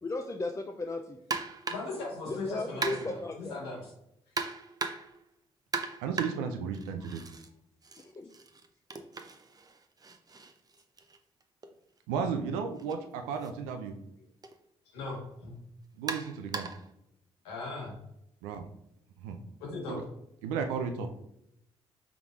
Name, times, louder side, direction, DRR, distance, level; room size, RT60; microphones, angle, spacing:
voice 1, 0.0-1.2 2.3-3.6 8.0-8.3, left 2 dB, 25° left, 4 dB, 0.4 m, -36 dB
sound 1, 1.3-2.0 2.8-3.3 4.4-5.2 5.7-7.5 7.8-11.7 12.8-12.9 13.4-13.5 14.4-14.6 16.1-16.9, right 4 dB, 30° right, 0.5 m, -38 dB
voice 2, 1.7-3.9 7.0-7.1 14.8-15.6 17.4-18.0 19.6-20.0, left 2 dB, 90° left, -3 dB, 1.3 m, -38 dB
voice 3, 6.0-7.2 12.1-13.9 16.0-16.7 18.4-18.6 19.2-19.4 19.9-20.0 20.4-21.1, right 6 dB, 85° right, 6 dB, 0.4 m, -34 dB
4.7 x 3.5 x 2.3 m, 0.80 s
hypercardioid pair, 45°, 13 cm